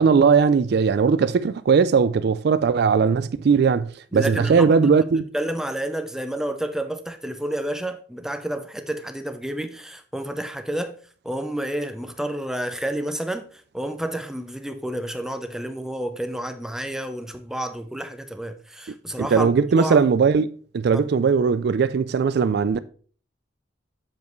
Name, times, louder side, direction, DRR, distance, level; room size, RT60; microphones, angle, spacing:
voice 1, 0.0-5.3 19.2-22.8, right 5 dB, 60° right, 0.4 m, -19 dB
voice 2, 4.1-4.7 5.3-11.0 11.2-19.5 19.8-20.0 20.9-21.0, right 1 dB, 5° right, 0.6 m, -30 dB
7.4 x 7.1 x 3.1 m
head